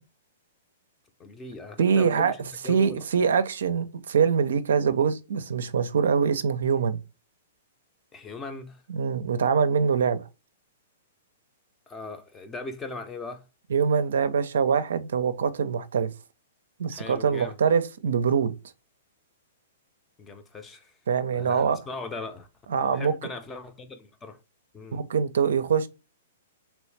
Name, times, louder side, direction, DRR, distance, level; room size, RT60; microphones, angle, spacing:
voice 1, 1.2-3.0 8.1-8.8 11.9-13.4 16.9-17.5 20.2-21.0 21.3-22.5 22.8-24.4 24.7-25.1, left 3 dB, 20° left, 0.6 m, -39 dB
voice 2, 1.8-2.3 2.7-7.0 8.9-10.2 13.7-16.1 16.8-18.5 21.1-21.8 22.7-23.1 24.9-25.9, right 6 dB, 75° right, 0.4 m, -24 dB
3.1 x 3.0 x 3.2 m
hypercardioid pair, 125°, 0 cm